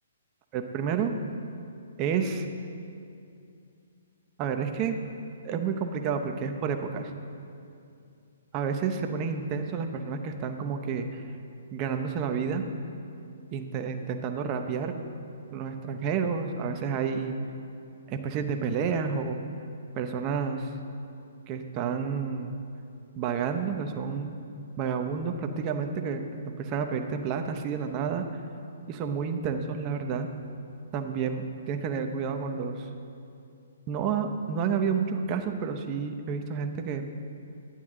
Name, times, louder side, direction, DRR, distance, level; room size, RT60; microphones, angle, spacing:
voice 1, 0.5-1.2 2.0-2.5 4.4-5.0 5.4-7.1 8.5-11.2 11.7-12.7 13.5-14.9 15.5-17.3 18.1-19.4 19.9-20.7 21.5-22.6 23.2-24.3 24.8-28.2 28.9-30.3 30.9-32.9 33.9-37.0, right 6 dB, 30° right, 5 dB, 0.6 m, -30 dB
9.6 x 8.5 x 3.7 m, 2.6 s
hypercardioid pair, 145°, 0 cm